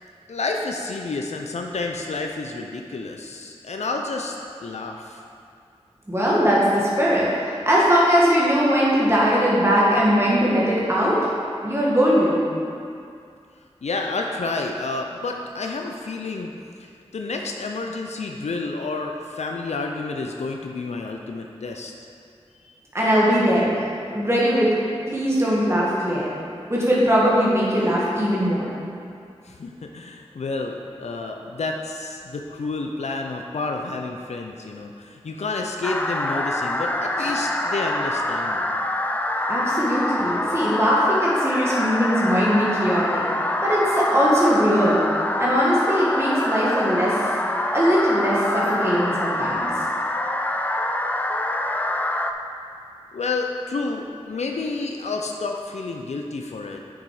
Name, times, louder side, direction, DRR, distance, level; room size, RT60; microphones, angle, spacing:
voice 1, 0.3-5.2 13.8-16.5 16.8-21.9 22.6-22.7 29.4-38.7 53.1-56.8, left 3 dB, 80° left, 2 dB, 0.5 m, -30 dB
voice 2, 6.1-11.3 11.6-12.4 22.9-23.8 24.1-24.8 25.1-26.3 26.7-28.7 37.2-37.3 39.5-43.3 43.6-45.1 45.4-47.3 47.7-49.7, equal, 25° right, -7 dB, 1.8 m, -20 dB
sound 1, 35.8-52.3, left 1 dB, 15° left, 0.5 m, -25 dB
6.9 x 6.2 x 4.8 m, 2.4 s
cardioid pair, 45°, 11 cm